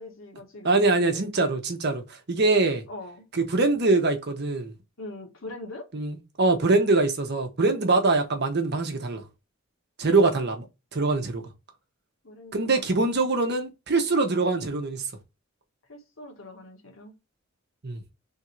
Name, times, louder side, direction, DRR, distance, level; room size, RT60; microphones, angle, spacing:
voice 1, 0.0-1.3 2.9-3.2 5.0-5.9 12.2-13.1 15.9-17.1, left 2 dB, 75° left, 1.4 m, -42 dB
voice 2, 0.6-2.0 2.3-2.8 3.3-4.7 5.9-9.2 10.0-10.6 10.9-11.4 12.5-15.0 17.8-18.0, right 3 dB, 55° right, 1.0 m, -23 dB
3.6 x 2.7 x 4.4 m
head